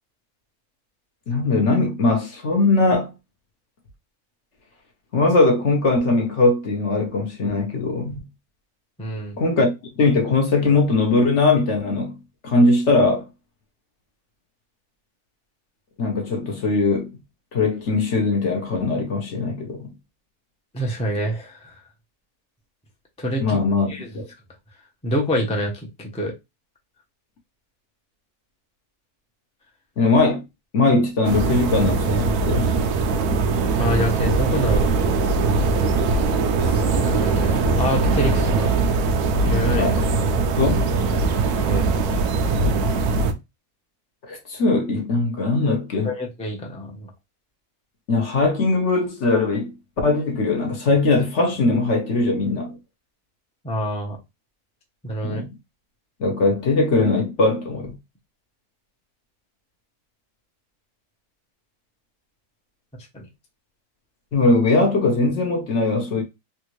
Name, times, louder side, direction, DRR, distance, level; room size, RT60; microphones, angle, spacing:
voice 1, 1.3-3.1 5.1-8.2 9.4-12.1 12.4-13.2 16.0-17.1 17.5-19.9 23.4-24.3 30.0-30.4 30.7-32.7 39.8-40.1 40.6-40.9 44.2-46.1 48.1-49.7 50.0-52.8 55.2-55.4 56.2-57.9 64.3-66.2, left 3 dB, 55° left, 1.0 m, -20 dB
voice 2, 9.0-9.4 20.7-21.7 23.2-23.6 23.9-24.1 25.0-25.7 26.0-26.3 33.8-34.8 36.5-38.7 39.4-40.0 41.7-41.9 46.0-47.1 53.6-54.2 55.0-55.4 63.1-63.2, equal, 5° left, 0.5 m, -26 dB
sound 1, 31.2-43.3, right 3 dB, 80° right, 1.0 m, -21 dB
3.4 x 2.5 x 3.0 m
omnidirectional pair, 1.6 m